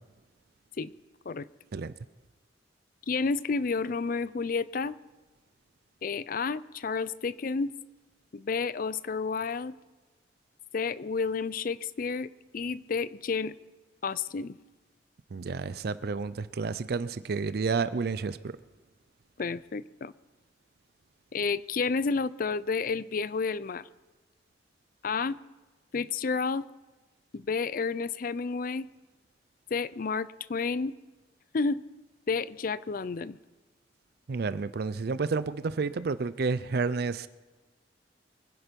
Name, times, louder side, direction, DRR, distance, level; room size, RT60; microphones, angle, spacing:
voice 1, 3.1-4.9 6.0-7.7 8.3-9.8 10.7-13.5 14.0-14.6 19.4-20.1 21.3-23.8 25.0-25.4 25.9-26.6 27.3-28.9 29.7-30.9 31.5-31.8 32.3-33.4, left 4 dB, 50° left, 18 dB, 0.4 m, -30 dB
voice 2, 15.3-18.6 34.3-37.3, right 4 dB, 55° right, 15 dB, 0.4 m, -30 dB
24.5 x 10.5 x 5.2 m, 1.2 s
head